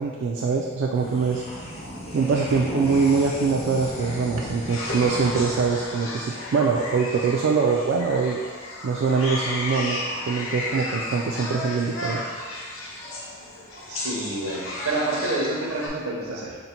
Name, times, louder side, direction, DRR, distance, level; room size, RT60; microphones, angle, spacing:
voice 1, 0.0-1.4 2.1-8.4 8.8-12.2, right 5 dB, 60° right, 0 dB, 0.3 m, -23 dB
sound 1, 0.9-7.6, left 1 dB, 30° left, 0.6 m, -36 dB
sound 2, 4.7-15.9, left 1 dB, 65° left, 0.7 m, -33 dB
voice 2, 13.9-16.6, right 2 dB, 80° right, -3 dB, 0.8 m, -28 dB
3.9 x 2.1 x 4.2 m, 1.5 s
head